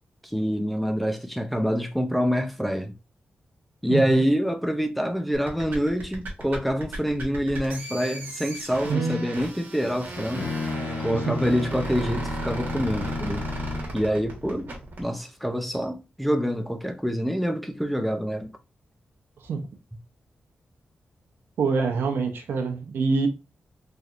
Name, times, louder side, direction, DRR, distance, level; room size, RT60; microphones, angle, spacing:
voice 1, 0.2-2.9 3.8-10.5 11.0-13.4 13.9-14.7 15.0-18.5, equal, ahead, 0.5 m, -26 dB
voice 2, 3.9-4.3 8.8-9.4 11.1-11.4 19.4-19.6 21.6-23.3, right 4 dB, 85° right, 0.7 m, -26 dB
sound 1, 5.3-15.0, right 1 dB, 65° right, 1.3 m, -36 dB
Bowed string instrument, 9.8-14.0, left 3 dB, 50° left, 0.9 m, -33 dB
3.3 x 2.7 x 2.4 m
cardioid pair, 100°, 4 cm